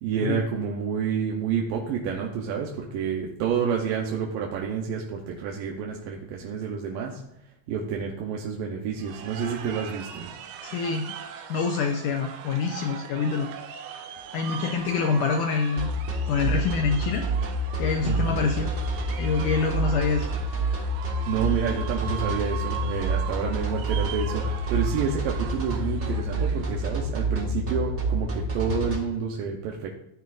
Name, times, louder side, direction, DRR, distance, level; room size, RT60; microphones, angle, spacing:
voice 1, 0.0-7.2 7.7-10.3 18.0-18.5 21.0-29.9, right 6 dB, 75° right, -1 dB, 2.5 m, -29 dB
sound 1, 9.0-27.0, right 8 dB, 90° right, 2.7 m, -40 dB
voice 2, 10.6-11.1 11.5-13.5 13.9-14.1 14.3-15.9 16.3-17.3 17.8-18.7 19.2-20.3, left 5 dB, 75° left, 4 dB, 1.9 m, -26 dB
sound 2, 15.8-29.0, right 2 dB, 45° right, 0.9 m, -27 dB
15.0 x 9.5 x 2.6 m, 0.78 s
omnidirectional pair, 4.4 m